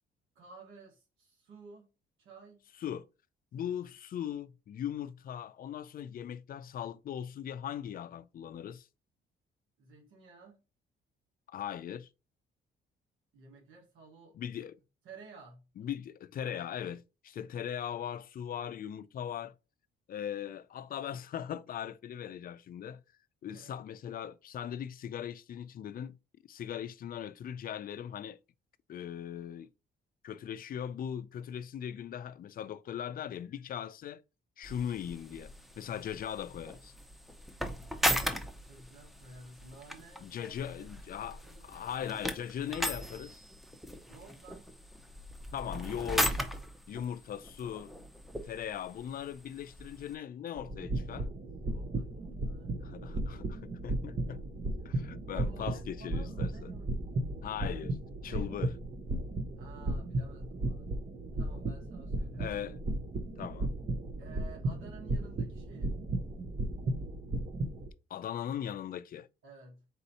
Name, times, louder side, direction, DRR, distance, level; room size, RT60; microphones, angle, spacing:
voice 1, 0.3-1.9 2.2-2.6 3.6-3.8 9.8-10.6 13.3-14.4 15.0-15.7 23.4-23.8 38.6-40.9 41.2-41.6 44.1-44.7 51.1-53.0 54.8-54.9 55.3-56.9 58.2-58.7 59.6-61.0 61.4-62.5 64.2-66.0 69.4-69.9, right 3 dB, 90° right, 1.4 m, -53 dB
voice 2, 3.5-8.9 11.5-12.1 14.3-14.8 15.8-19.6 20.1-23.0 23.4-26.2 26.4-28.4 28.9-29.7 30.2-34.2 34.6-36.9 40.2-43.4 45.5-46.4 46.9-47.9 48.4-51.3 52.8-54.4 54.8-56.7 57.4-58.0 58.2-58.7 62.4-62.8 63.4-63.7 68.1-69.3, left 9 dB, 45° left, 0.4 m, -39 dB
sound 1, 34.6-50.1, equal, ahead, 0.7 m, -38 dB
sound 2, 50.6-67.9, right 2 dB, 35° right, 0.8 m, -35 dB
4.2 x 2.7 x 4.0 m
cardioid pair, 90°, 20 cm